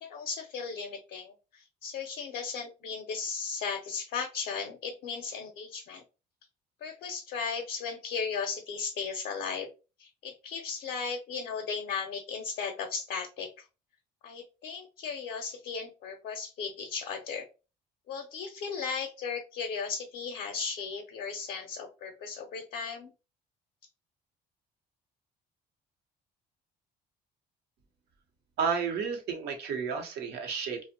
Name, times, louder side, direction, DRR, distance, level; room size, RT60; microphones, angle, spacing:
voice 1, 0.0-6.0 6.8-9.7 10.0-13.5 14.2-17.4 18.1-23.1, left 5 dB, 65° left, 3 dB, 0.5 m, -36 dB
voice 2, 28.6-30.8, right 6 dB, 80° right, 3 dB, 0.7 m, -31 dB
2.5 x 2.0 x 2.6 m, 0.31 s
cardioid pair, 110°, 17 cm